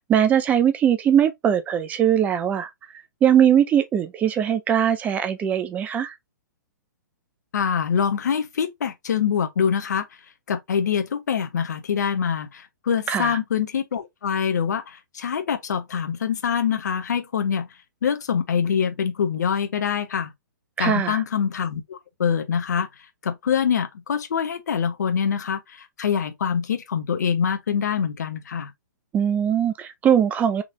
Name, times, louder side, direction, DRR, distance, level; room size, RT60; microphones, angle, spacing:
voice 1, 0.1-2.7 3.2-6.1 13.1-13.4 20.8-21.2 29.1-30.6, right 9 dB, 15° right, 0.4 m, -20 dB
voice 2, 7.5-10.1 10.5-17.7 18.0-20.3 20.8-22.9 23.2-28.7, left 7 dB, 60° left, 0.8 m, -24 dB
3.7 x 3.2 x 2.5 m
figure-of-eight pair, 115°, 11 cm